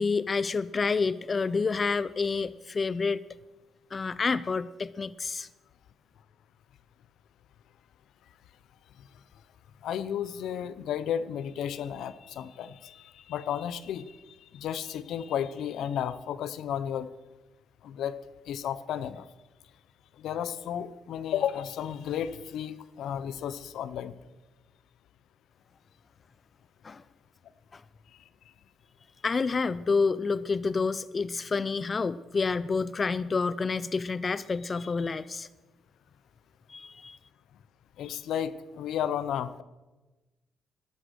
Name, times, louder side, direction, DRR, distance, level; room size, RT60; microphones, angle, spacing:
voice 1, 0.0-3.2 3.9-5.5 26.8-27.0 27.7-27.8 29.2-35.5 36.7-37.2, left 4 dB, 35° left, 17 dB, 0.4 m, -28 dB
voice 2, 9.8-14.2 14.5-17.1 17.8-18.2 18.5-19.2 20.2-24.1 38.0-39.6, left 9 dB, 75° left, 15 dB, 0.7 m, -33 dB
13.0 x 12.0 x 6.4 m, 1.1 s
cardioid pair, 90°, 0 cm